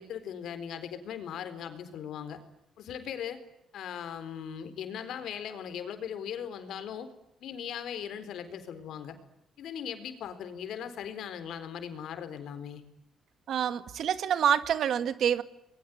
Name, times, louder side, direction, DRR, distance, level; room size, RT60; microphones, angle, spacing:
voice 1, 0.0-2.4 2.8-3.4 3.7-7.1 7.4-9.2 9.6-12.8, left 8 dB, 75° left, 10 dB, 4.2 m, -39 dB
voice 2, 13.5-15.4, right 8 dB, 70° right, 12 dB, 1.9 m, -27 dB
28.0 x 22.0 x 9.5 m, 0.83 s
cardioid pair, 90°, 0 cm